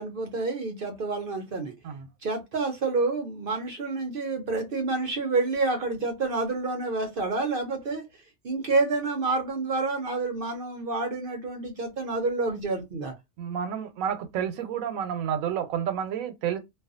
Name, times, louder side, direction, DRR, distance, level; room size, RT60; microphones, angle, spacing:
voice 1, 0.0-1.7 2.2-13.1, right 3 dB, 60° right, 0.6 m, -28 dB
voice 2, 13.4-16.6, right 8 dB, 85° right, 1.0 m, -30 dB
2.5 x 2.3 x 2.4 m
omnidirectional pair, 1.4 m